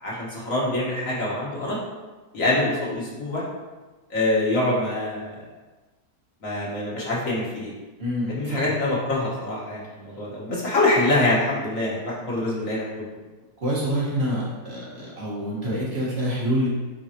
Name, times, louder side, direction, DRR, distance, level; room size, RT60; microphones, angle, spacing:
voice 1, 0.0-1.8 2.3-3.4 4.1-5.4 6.4-7.7 8.3-13.1, left 2 dB, 60° left, -5 dB, 1.9 m, -25 dB
voice 2, 8.0-8.6 13.6-16.7, equal, 45° right, -6 dB, 1.9 m, -26 dB
9.4 x 3.8 x 3.0 m, 1.2 s
omnidirectional pair, 1.6 m